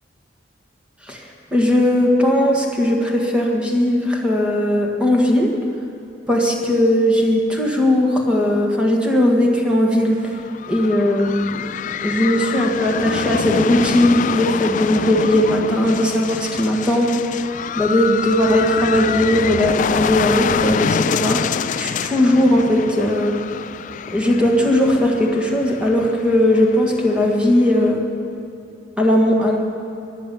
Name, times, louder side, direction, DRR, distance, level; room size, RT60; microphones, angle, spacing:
voice 1, 1.5-5.5 6.3-10.3 10.7-11.6 12.0-17.1 17.8-21.4 21.8-23.3 24.1-28.0 29.0-29.6, left 1 dB, 5° right, -1 dB, 1.6 m, -18 dB
sound 1, 10.2-27.9, left 7 dB, 40° left, 0.3 m, -26 dB
15.0 x 10.5 x 6.8 m, 2.7 s
head